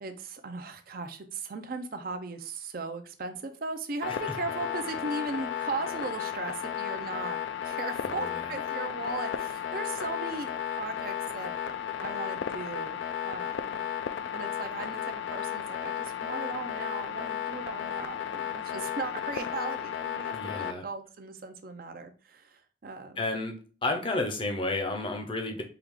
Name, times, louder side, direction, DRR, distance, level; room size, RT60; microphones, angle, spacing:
voice 1, 0.0-7.4 7.6-11.5 12.0-13.8 14.3-23.3, right 3 dB, 50° right, 7 dB, 0.5 m, -37 dB
sound 1, 4.0-20.7, left 9 dB, 70° left, 0.3 m, -34 dB
voice 2, 8.1-8.5 20.3-20.8 23.2-23.6 23.8-25.6, left 2 dB, 25° left, 4 dB, 0.6 m, -31 dB
4.6 x 2.4 x 3.5 m, 0.38 s
head